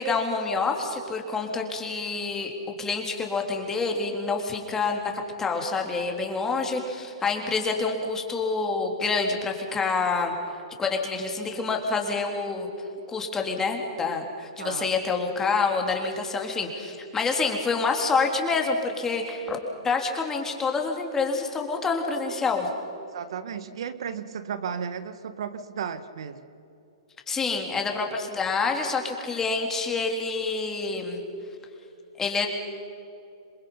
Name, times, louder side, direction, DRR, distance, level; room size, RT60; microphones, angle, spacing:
voice 1, 0.0-2.5 2.8-5.1 5.4-10.3 10.8-12.7 13.1-22.7 27.3-31.2 32.2-32.5, left 4 dB, 15° left, 2 dB, 3.4 m, -27 dB
voice 2, 14.6-14.9 23.1-26.4, right 7 dB, 70° right, 12 dB, 1.3 m, -34 dB
27.5 x 22.5 x 5.6 m, 2.7 s
hypercardioid pair, 125°, 3 cm